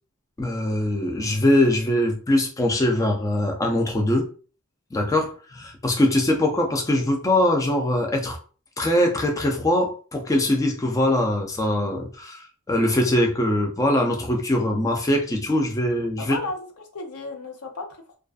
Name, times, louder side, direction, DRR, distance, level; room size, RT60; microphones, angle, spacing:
voice 1, 0.4-4.3 4.9-8.4 8.8-16.4, left 1 dB, 15° left, 0.4 m, -22 dB
voice 2, 16.2-18.2, left 3 dB, 75° left, 0.6 m, -34 dB
2.4 x 2.3 x 2.3 m
head